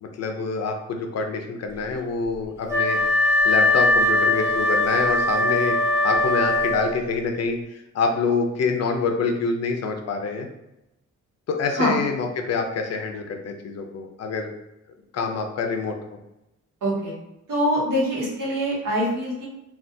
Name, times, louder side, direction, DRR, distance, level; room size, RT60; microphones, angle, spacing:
voice 1, 0.0-3.0 3.4-5.7 6.0-10.5 11.5-14.5 15.1-15.9, left 4 dB, 55° left, 3 dB, 0.5 m, -26 dB
Wind instrument woodwind instrument, 2.7-7.1, left 2 dB, 10° right, 0.4 m, -21 dB
voice 2, 11.7-12.1 16.8-17.1 17.5-19.4, equal, 80° right, -6 dB, 1.5 m, -24 dB
3.4 x 2.4 x 2.6 m, 0.91 s
wide cardioid pair, 150°, 31 cm